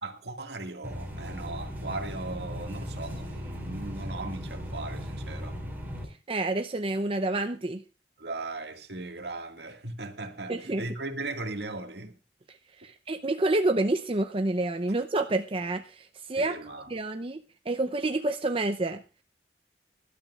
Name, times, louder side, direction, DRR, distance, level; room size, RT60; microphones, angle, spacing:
voice 1, 0.0-5.6 8.2-12.2 16.4-16.9, right 2 dB, 70° right, 2.0 m, -38 dB
sound 1, 0.8-6.0, equal, 10° right, 5.0 m, -37 dB
voice 2, 6.3-7.8 10.5-10.8 12.8-16.5 16.9-19.0, right 2 dB, 30° right, 0.6 m, -28 dB
23.0 x 12.0 x 2.4 m
head